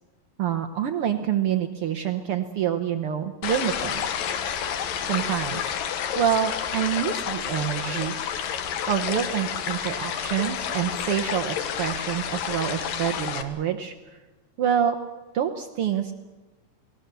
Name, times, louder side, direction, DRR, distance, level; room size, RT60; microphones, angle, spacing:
voice 1, 0.4-4.0 5.0-5.7 6.1-8.2 8.9-14.2 14.6-15.0 15.3-16.1, right 9 dB, 85° right, 7 dB, 1.2 m, -27 dB
sound 1, 3.4-13.4, left 8 dB, 80° left, 3.0 m, -30 dB
29.0 x 19.5 x 6.9 m, 1.2 s
omnidirectional pair, 3.9 m